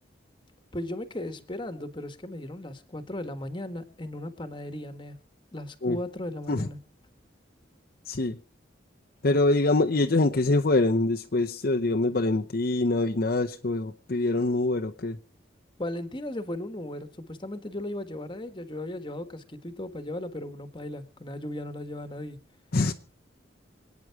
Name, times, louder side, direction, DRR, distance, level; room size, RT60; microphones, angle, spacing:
voice 1, 0.7-5.2 5.5-6.8 15.8-22.4, left 1 dB, 25° left, 1.5 m, -36 dB
voice 2, 8.1-8.4 9.2-15.2 22.7-22.9, left 2 dB, 55° left, 0.8 m, -24 dB
26.5 x 9.4 x 4.7 m
head